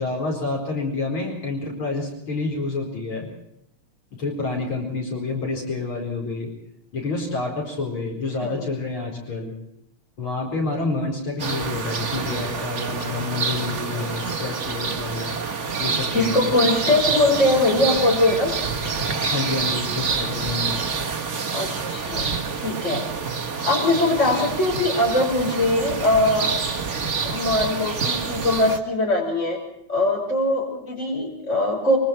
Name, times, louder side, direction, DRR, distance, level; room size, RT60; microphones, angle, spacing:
voice 1, 0.0-3.3 4.1-6.5 6.9-9.5 10.2-15.3 15.8-16.6 19.3-20.8, left 3 dB, 70° left, 0 dB, 5.4 m, -28 dB
sound 1, 11.4-28.8, right 5 dB, 35° right, 1.7 m, -27 dB
voice 2, 16.1-18.5 21.5-22.3 22.6-23.0 23.6-26.6 27.2-29.6 29.9-32.0, left 2 dB, 35° left, 1 dB, 5.8 m, -21 dB
24.5 x 24.0 x 4.5 m, 0.75 s
omnidirectional pair, 2.3 m